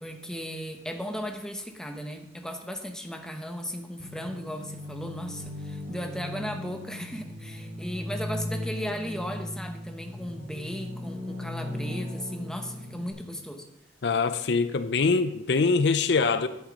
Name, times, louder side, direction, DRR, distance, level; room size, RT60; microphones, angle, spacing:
voice 1, 0.0-13.7, equal, 5° left, 0.9 m, -36 dB
sound 1, 4.0-13.1, left 1 dB, 25° right, 2.7 m, -37 dB
voice 2, 14.0-16.5, left 4 dB, 60° left, 0.5 m, -23 dB
10.5 x 8.0 x 5.2 m
head